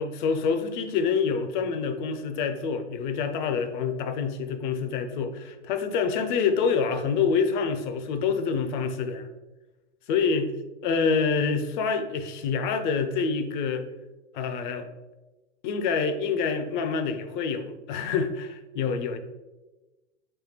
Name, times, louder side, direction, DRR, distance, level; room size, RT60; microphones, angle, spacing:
voice 1, 0.0-9.3 10.1-10.5 10.8-13.9 14.3-14.9 15.6-19.2, left 5 dB, 45° left, 8 dB, 0.6 m, -27 dB
5.3 x 3.2 x 3.0 m, 1.1 s
figure-of-eight pair, 95°, 35 cm